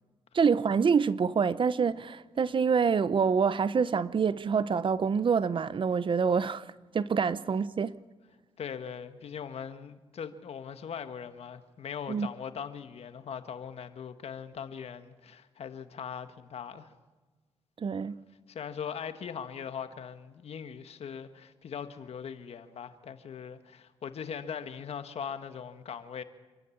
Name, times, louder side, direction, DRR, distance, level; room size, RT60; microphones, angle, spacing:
voice 1, 0.3-6.7 6.9-8.0 12.1-12.3 17.8-18.2, right 6 dB, 50° right, 0.7 m, -26 dB
voice 2, 8.6-16.9 18.5-26.2, left 7 dB, 70° left, 1.5 m, -40 dB
27.0 x 13.0 x 8.5 m
cardioid pair, 60°, 11 cm